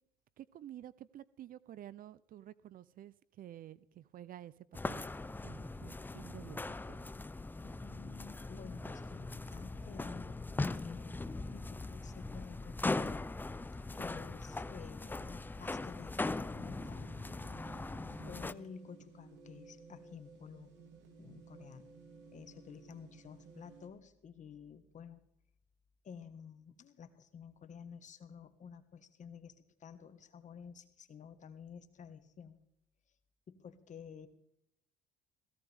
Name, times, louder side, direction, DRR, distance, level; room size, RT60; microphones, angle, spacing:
voice 1, 0.4-4.5 4.9-5.1 5.4-7.1 18.0-18.4, right 12 dB, 50° right, 20 dB, 0.6 m, -51 dB
sound 1, 4.7-18.5, left 2 dB, 10° left, 0.5 m, -40 dB
voice 2, 7.6-13.2 13.9-17.1 18.3-22.0 22.3-25.2 26.0-32.6 33.5-34.3, left 6 dB, 40° left, 9 dB, 1.7 m, -52 dB
sound 2, 16.5-23.9, right 5 dB, 70° right, 3.7 m, -57 dB
17.5 x 15.5 x 3.6 m, 0.78 s
supercardioid pair, 90°, 18 cm